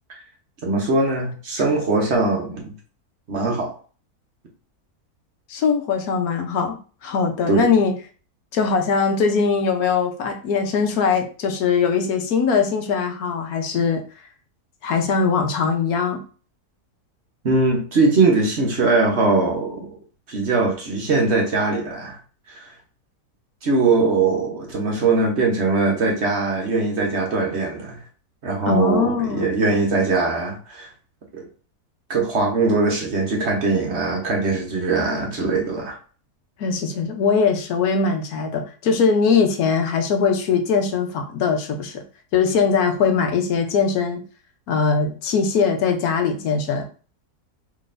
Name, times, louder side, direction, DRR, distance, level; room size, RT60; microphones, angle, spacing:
voice 1, 0.6-2.7 3.3-3.7 7.5-7.7 17.4-19.9 20.3-22.2 22.5-22.7 23.6-28.0 28.4-30.9 31.3-31.4 32.1-36.0, right 3 dB, 50° right, 0 dB, 1.1 m, -21 dB
voice 2, 5.5-7.9 8.5-14.0 14.8-16.2 28.7-29.5 36.6-42.0 42.3-44.2 44.7-46.9, left 5 dB, 75° left, 5 dB, 1.2 m, -21 dB
3.9 x 3.3 x 2.5 m, 0.37 s
omnidirectional pair, 1.6 m